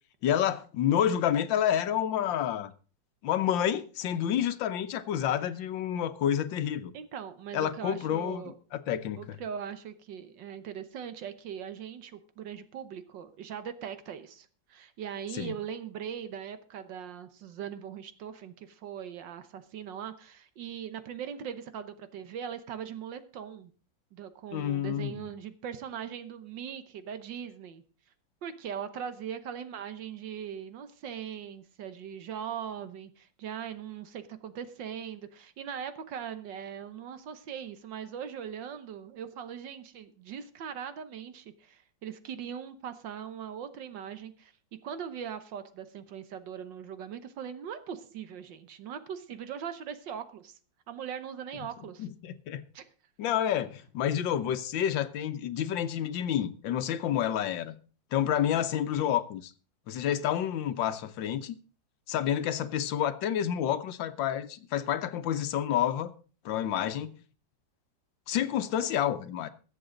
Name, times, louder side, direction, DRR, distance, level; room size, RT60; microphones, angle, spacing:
voice 1, 0.2-2.7 3.2-6.9 7.5-9.2 15.3-15.6 24.5-25.2 52.0-52.7 53.2-57.8 58.1-59.5 59.9-61.6 62.1-66.1 66.5-67.1 68.3-69.5, left 10 dB, 85° left, 1.6 m, -29 dB
voice 2, 6.9-8.5 9.2-23.7 24.1-27.8 28.4-44.5 44.8-50.6 50.9-52.1 52.7-52.9, right 8 dB, 75° right, 1.7 m, -40 dB
21.0 x 7.7 x 3.8 m
omnidirectional pair, 2.0 m